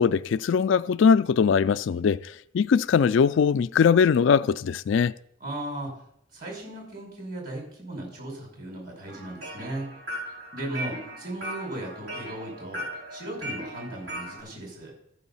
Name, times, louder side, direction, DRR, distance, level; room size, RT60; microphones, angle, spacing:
voice 1, 0.0-2.2 2.5-5.1, left 6 dB, 65° left, 0.3 m, -21 dB
voice 2, 5.4-6.0 6.3-9.9 10.5-12.8 13.1-14.9, right 1 dB, 45° right, 5.5 m, -36 dB
sound 1, 9.1-14.4, right 1 dB, 85° right, 4.8 m, -38 dB
14.0 x 6.9 x 5.5 m
head